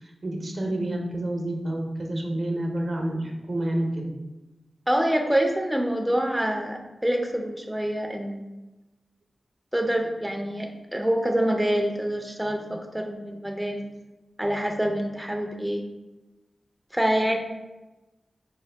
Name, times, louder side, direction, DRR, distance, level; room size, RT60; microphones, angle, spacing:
voice 1, 0.2-4.1 17.2-17.3, right 1 dB, 60° right, 1 dB, 0.7 m, -29 dB
voice 2, 4.9-8.5 9.7-13.8 14.4-15.8 16.9-17.4, equal, 10° right, 2 dB, 0.4 m, -26 dB
4.5 x 2.1 x 3.3 m, 1.1 s
cardioid pair, 45°, 0 cm